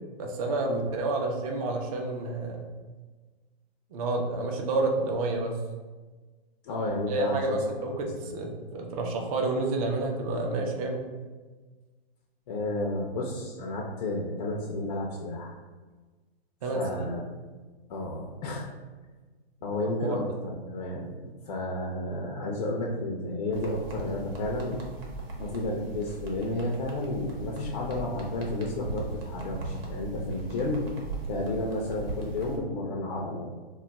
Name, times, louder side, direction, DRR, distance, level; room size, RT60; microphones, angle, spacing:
voice 1, 0.2-2.7 3.9-5.6 7.1-11.0 16.6-17.2 20.0-20.4, right 2 dB, 35° right, 1 dB, 0.5 m, -29 dB
voice 2, 6.6-7.6 8.0-8.3 12.5-15.5 16.7-17.2 17.9-18.7 19.6-21.2 21.5-24.8 25.4-30.9 31.3-33.5, left 2 dB, 45° left, -2 dB, 0.4 m, -32 dB
sound 1, 23.5-32.6, right 2 dB, 70° right, 0.9 m, -39 dB
2.3 x 2.1 x 3.9 m, 1.3 s
hypercardioid pair, 150°, 30 cm